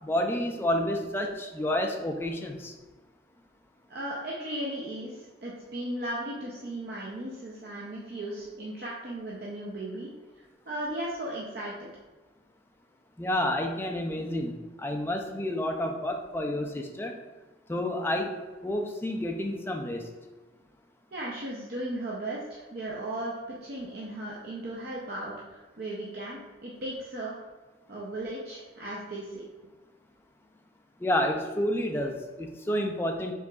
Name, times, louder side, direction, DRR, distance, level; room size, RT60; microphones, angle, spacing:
voice 1, 0.0-2.7 13.2-17.1 17.7-20.1 31.0-33.3, left 1 dB, 10° left, 4 dB, 0.3 m, -30 dB
voice 2, 3.9-10.1 10.4-11.9 21.1-27.5 27.9-29.4, right 1 dB, 55° right, -5 dB, 0.6 m, -36 dB
4.7 x 3.6 x 2.3 m, 1.3 s
head